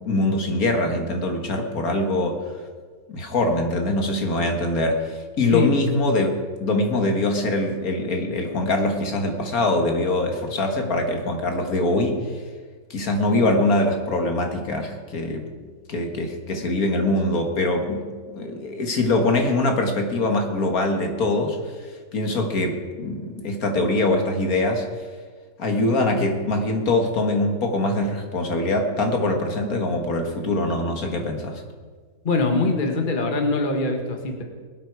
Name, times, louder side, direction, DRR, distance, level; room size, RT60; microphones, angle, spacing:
voice 1, 0.0-2.4 3.1-6.3 6.6-12.4 12.9-15.5 15.9-21.9 22.1-25.1 25.6-31.6, left 2 dB, 70° left, 3 dB, 2.0 m, -23 dB
voice 2, 32.2-34.4, left 3 dB, 35° left, 3 dB, 1.5 m, -23 dB
21.5 x 8.6 x 4.8 m, 1.5 s
omnidirectional pair, 1.6 m